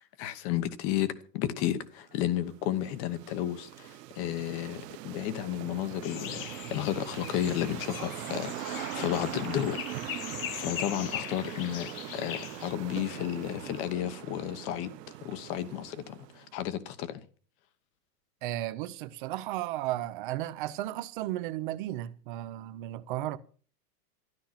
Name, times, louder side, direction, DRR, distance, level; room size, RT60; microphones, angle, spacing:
voice 1, 0.2-1.1 1.3-9.9 10.5-14.9 15.2-17.2, left 12 dB, 25° left, 1.0 m, -32 dB
sound 1, 2.1-16.6, right 16 dB, 85° right, 0.8 m, -41 dB
sound 2, 6.0-12.7, left 11 dB, 55° left, 1.3 m, -41 dB
voice 2, 18.4-23.4, right 14 dB, 35° right, 0.8 m, -34 dB
13.0 x 12.0 x 5.8 m
supercardioid pair, 175°, 47 cm